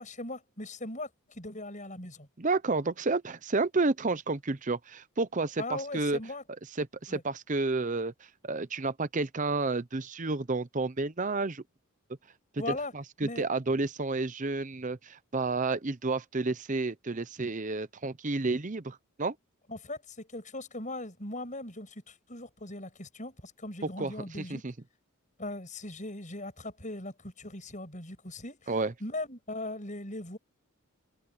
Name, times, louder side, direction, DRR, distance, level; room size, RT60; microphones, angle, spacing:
voice 1, 0.0-2.3 5.6-6.4 7.1-7.2 12.6-12.9 13.2-13.4 19.7-24.6 25.4-28.7 29.0-30.4, left 2 dB, 35° left, 7.3 m, -39 dB
voice 2, 2.4-6.2 6.8-11.6 12.7-19.4 24.0-24.7 28.7-28.9, right 3 dB, 35° right, 0.7 m, -31 dB
head